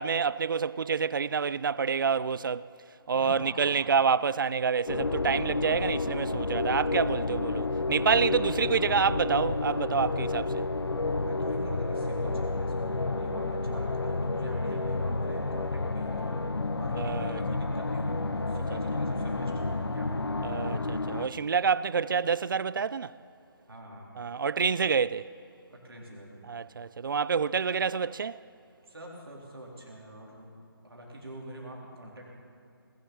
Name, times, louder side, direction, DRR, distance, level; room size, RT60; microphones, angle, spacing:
voice 1, 0.0-2.7 3.1-10.7 17.0-17.4 20.4-23.2 24.2-25.3 26.5-28.4, right 6 dB, 60° right, 0.4 m, -28 dB
voice 2, 3.1-3.9 8.1-8.3 11.2-16.4 16.8-20.4 23.7-24.1 25.7-26.4 28.9-30.5 30.8-32.2, right 1 dB, 75° right, 3.8 m, -44 dB
sound 1, 4.9-21.3, left 3 dB, 85° left, 0.8 m, -30 dB
19.5 x 7.5 x 7.1 m
figure-of-eight pair, 155°, 13 cm